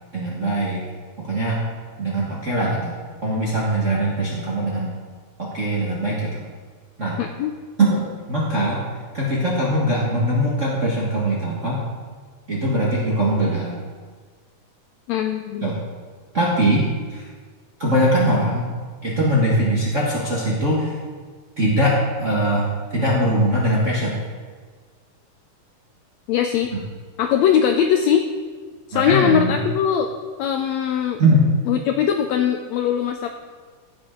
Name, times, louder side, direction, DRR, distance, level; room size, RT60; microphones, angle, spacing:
voice 1, 0.1-0.8 1.2-1.6 2.0-4.9 5.4-6.4 7.0-7.2 7.8-8.0 8.3-8.8 9.1-11.8 12.5-13.7 15.6-15.8 16.3-17.2 17.8-18.7 19.0-21.0 21.6-24.2 28.9-29.6 31.2-31.5, right 1 dB, 40° right, -6 dB, 1.1 m, -21 dB
voice 2, 7.2-7.5 15.1-15.8 26.3-26.7 27.2-28.3 28.9-30.1 30.4-31.2 31.7-33.3, left 8 dB, 85° left, 5 dB, 1.5 m, -20 dB
15.0 x 7.4 x 3.8 m, 1.5 s
omnidirectional pair, 3.7 m